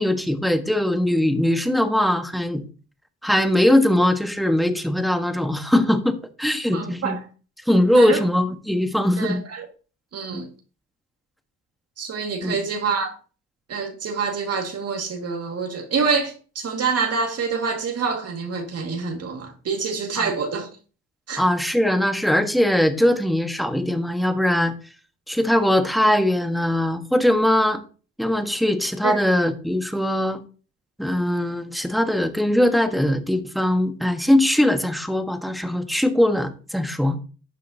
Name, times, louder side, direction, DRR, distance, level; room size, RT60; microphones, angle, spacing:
voice 1, 0.0-2.6 3.2-7.2 7.7-9.4 10.3-10.4 12.4-12.6 20.2-20.3 21.4-24.7 25.3-27.8 28.2-30.4 31.0-37.2, left 1 dB, ahead, 1.3 m, -21 dB
voice 2, 6.7-7.2 7.9-8.2 9.2-9.7 10.1-10.5 12.0-13.1 13.7-20.7 21.3-21.4 29.0-29.2, right 5 dB, 55° right, 2.0 m, -26 dB
12.0 x 7.5 x 2.8 m
cardioid pair, 90°, 30 cm